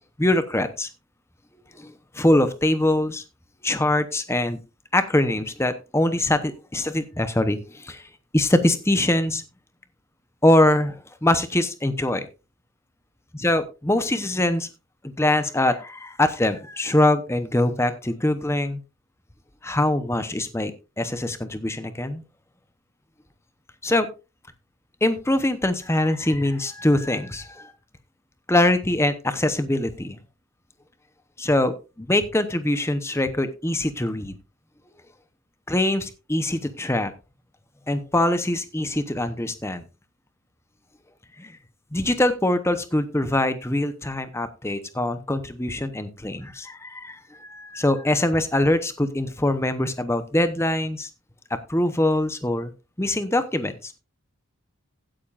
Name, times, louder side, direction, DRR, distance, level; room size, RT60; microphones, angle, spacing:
voice 1, 0.2-0.9 1.7-3.2 3.6-4.6 4.9-8.0 8.3-9.4 10.4-12.3 13.3-14.7 15.0-18.8 19.6-20.7 21.0-22.2 23.8-24.1 25.0-27.7 28.5-30.2 31.4-34.4 35.7-37.1 37.9-39.8 41.4-41.5 41.9-51.1 51.5-52.7 53.0-53.9, left 1 dB, 10° left, 10 dB, 0.8 m, -23 dB
16.0 x 8.8 x 2.5 m, 0.29 s
head